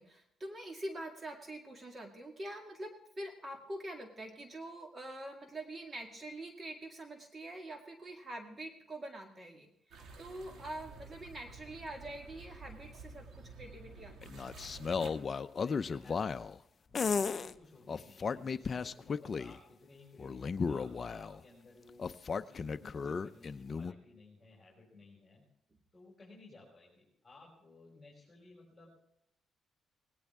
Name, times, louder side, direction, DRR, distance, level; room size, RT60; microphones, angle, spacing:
voice 1, 0.0-14.3 17.4-17.5, right 1 dB, 30° right, 4 dB, 2.0 m, -45 dB
sound 1, 9.9-15.1, right 3 dB, 65° right, 2.4 m, -51 dB
sound 2, 14.2-16.6 16.9-17.5 17.9-19.6 20.2-21.4 22.0-23.9, left 5 dB, 40° left, 0.6 m, -35 dB
voice 2, 15.6-16.5 16.9-25.4 25.9-29.0, left 2 dB, 15° left, -4 dB, 5.7 m, -58 dB
18.5 x 17.0 x 3.6 m, 0.76 s
cardioid pair, 90°, 0 cm